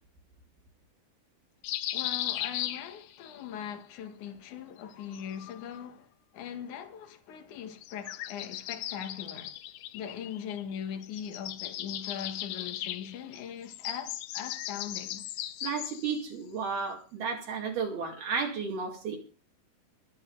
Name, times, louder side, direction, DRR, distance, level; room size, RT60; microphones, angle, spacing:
sound 1, 1.6-3.4 4.8-5.9 7.8-10.8 11.0-16.2, left 13 dB, 75° left, 2.8 m, -37 dB
voice 1, 1.9-9.6 9.9-15.3, left 8 dB, 55° left, 2.4 m, -40 dB
voice 2, 15.6-19.2, right 5 dB, 60° right, 3.9 m, -33 dB
23.5 x 8.5 x 3.9 m
omnidirectional pair, 5.2 m